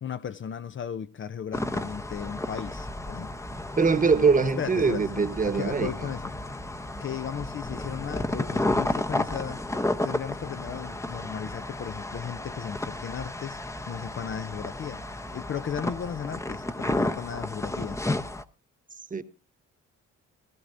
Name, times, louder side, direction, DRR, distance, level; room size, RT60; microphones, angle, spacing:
voice 1, 0.0-3.4 4.6-6.3 7.0-9.6 10.0-13.6 13.9-15.0 15.3-18.0, left 8 dB, 40° left, 0.5 m, -36 dB
sound 1, 1.5-18.4, left 1 dB, 10° left, 0.7 m, -32 dB
voice 2, 3.8-5.9 19.1-19.2, right 5 dB, 25° right, 1.2 m, -22 dB
17.5 x 14.5 x 2.6 m
cardioid pair, 90°, 30 cm